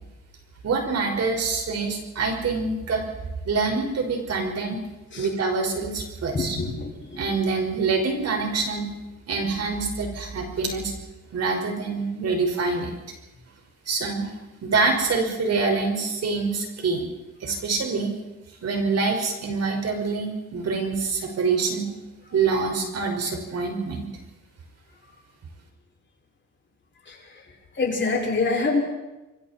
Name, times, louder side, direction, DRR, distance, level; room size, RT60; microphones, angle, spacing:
voice 1, 0.6-3.0 3.5-4.8 5.2-6.6 7.1-8.9 9.3-10.9 11.3-12.9 13.9-14.3 14.6-17.1 17.4-18.1 18.6-21.9 22.3-24.1, right 4 dB, 55° right, 3 dB, 5.6 m, -25 dB
voice 2, 6.3-7.2 27.1-27.2 27.8-28.8, left 3 dB, 40° left, -1 dB, 6.3 m, -25 dB
28.0 x 23.0 x 4.5 m, 1.0 s
cardioid pair, 90°, 30 cm